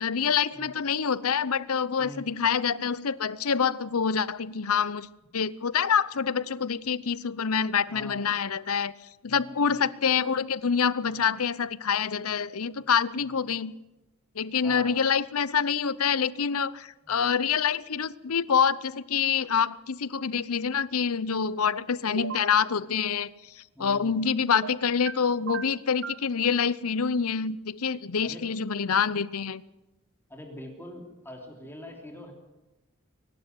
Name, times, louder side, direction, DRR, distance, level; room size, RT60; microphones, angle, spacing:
voice 1, 0.0-5.1 5.3-8.9 9.2-13.7 14.4-23.3 23.6-29.6, left 6 dB, 80° left, 18 dB, 0.8 m, -26 dB
voice 2, 7.9-8.2 9.2-9.9 11.0-11.2 12.7-12.8 13.1-13.5 14.6-15.0 17.0-17.3 23.7-24.2 28.2-28.5 30.3-32.3, left 1 dB, 10° left, 1 dB, 3.4 m, -44 dB
sound 1, 22.1-22.5 24.5-25.1 25.5-26.2, right 5 dB, 55° right, 0.8 m, -35 dB
23.5 x 12.0 x 9.6 m, 0.98 s
head